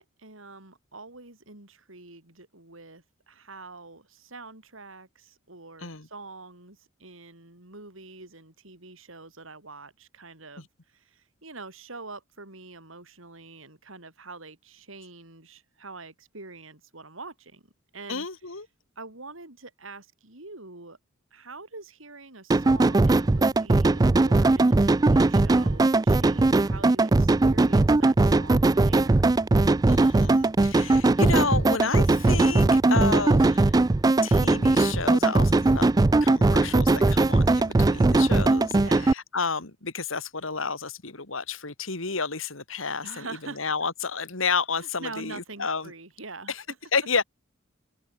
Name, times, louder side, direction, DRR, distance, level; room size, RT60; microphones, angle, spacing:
voice 1, 0.0-10.7 10.9-17.6 17.9-18.3 19.0-21.0 21.3-29.1 38.7-39.1 43.0-43.6 44.8-46.8, right 3 dB, 80° right, 5.3 m, -44 dB
voice 2, 18.1-18.7 29.9-33.7 34.2-35.9 36.2-38.7 39.0-45.9 46.5-46.6 46.9-47.2, left 4 dB, 80° left, 3.0 m, -31 dB
sound 1, 22.5-39.1, right 2 dB, 20° right, 0.3 m, -20 dB
head